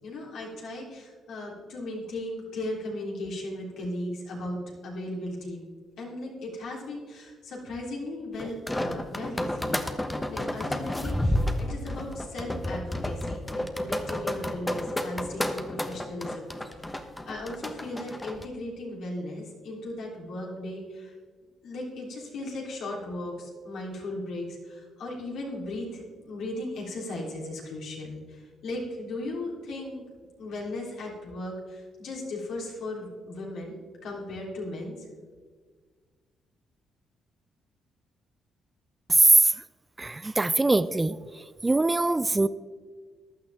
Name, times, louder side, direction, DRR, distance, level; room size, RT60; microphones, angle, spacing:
voice 1, 0.0-4.6 4.8-5.7 6.0-9.8 10.3-21.1 21.6-30.0 30.4-35.0, left 1 dB, 75° left, -2 dB, 3.4 m, -37 dB
sound 1, 8.4-18.5, left 1 dB, 10° left, 1.0 m, -31 dB
voice 2, 39.1-39.5 40.0-41.2 41.6-42.5, right 2 dB, 20° right, 14 dB, 0.4 m, -21 dB
15.0 x 11.0 x 3.6 m, 1.5 s
cardioid pair, 90°, 0 cm